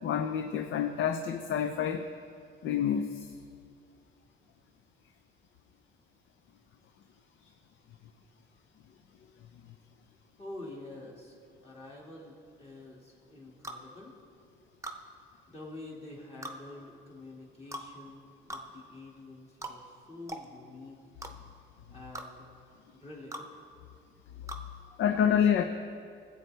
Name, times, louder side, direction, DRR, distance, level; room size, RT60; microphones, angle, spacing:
voice 1, 0.0-2.1 2.6-3.3 25.0-25.6, left 8 dB, 70° left, 7 dB, 0.5 m, -27 dB
voice 2, 10.4-11.4 11.6-14.2 15.5-21.0 21.9-22.5 22.9-23.5 25.1-25.3, left 2 dB, 30° left, -4 dB, 2.0 m, -47 dB
sound 1, 13.6-13.8 14.8-15.0 16.4-16.6 17.7-17.9 18.5-18.7 19.6-19.8 20.3-20.5 21.2-21.3 22.1-22.3 23.3-23.5 24.5-24.6, right 1 dB, 15° right, 0.7 m, -40 dB
16.0 x 7.7 x 3.3 m, 2.3 s
cardioid pair, 90°, 20 cm